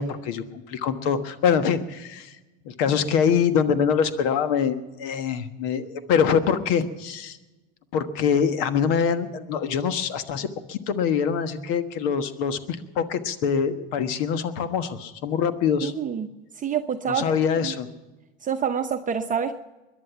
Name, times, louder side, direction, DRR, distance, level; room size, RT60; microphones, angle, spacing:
voice 1, 0.0-2.4 2.6-7.4 7.9-15.9 17.1-17.9, left 7 dB, 70° left, 10 dB, 1.4 m, -24 dB
voice 2, 15.8-17.3 17.6-17.7 18.4-19.5, right 7 dB, 25° right, 6 dB, 0.8 m, -27 dB
21.5 x 11.0 x 5.9 m, 1.1 s
hypercardioid pair, 90°, 29 cm